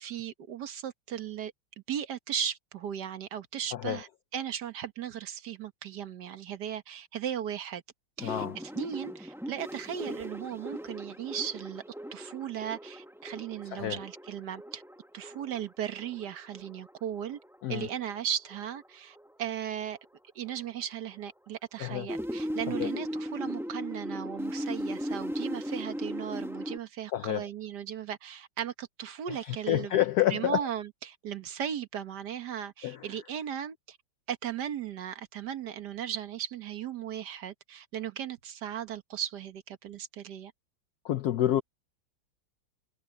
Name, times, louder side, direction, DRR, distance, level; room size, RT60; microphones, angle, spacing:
voice 1, 0.0-1.5 1.9-7.8 8.2-8.5 8.7-11.8 12.1-14.8 15.1-17.4 17.7-20.0 20.4-29.9 30.3-34.0 34.3-40.5, right 9 dB, 60° right, 1.7 m, -37 dB
voice 2, 8.2-8.6 13.7-14.0 17.6-17.9 21.8-22.1 22.7-22.9 27.1-27.4 29.3-30.6 32.8-33.1 41.0-41.6, left 12 dB, 65° left, 1.0 m, -29 dB
sound 1, 8.2-18.8 19.2-19.5 19.8-20.1 20.5-20.6 21.1-21.2 21.8-26.8, equal, ahead, 0.9 m, -38 dB
omnidirectional pair, 2.2 m